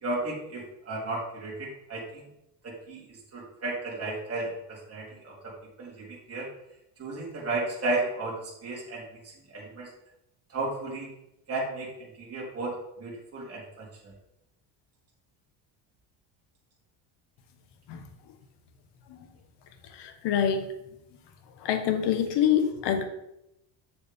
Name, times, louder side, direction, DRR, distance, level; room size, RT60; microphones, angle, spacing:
voice 1, 0.0-2.3 2.6-5.5 5.8-6.5 7.0-9.9 10.5-11.1 11.5-12.7 13.0-14.1, right 2 dB, 30° right, -5 dB, 3.4 m, -34 dB
voice 2, 19.9-20.6 21.6-23.0, left 9 dB, 60° left, 7 dB, 1.3 m, -25 dB
7.6 x 7.1 x 3.6 m, 0.82 s
cardioid pair, 115°, 46 cm